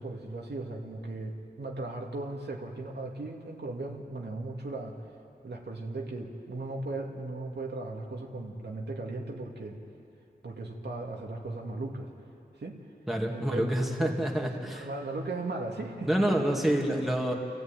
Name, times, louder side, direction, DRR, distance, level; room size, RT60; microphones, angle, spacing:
voice 1, 0.0-5.0 5.4-9.8 10.4-12.1 12.6-12.8 13.3-13.7 14.0-14.1 14.4-16.1, right 2 dB, 75° right, 0 dB, 2.3 m, -37 dB
voice 2, 13.1-14.9 16.0-17.3, right 1 dB, ahead, 0 dB, 2.6 m, -27 dB
30.0 x 14.0 x 9.1 m, 2.7 s
wide cardioid pair, 80°, 18 cm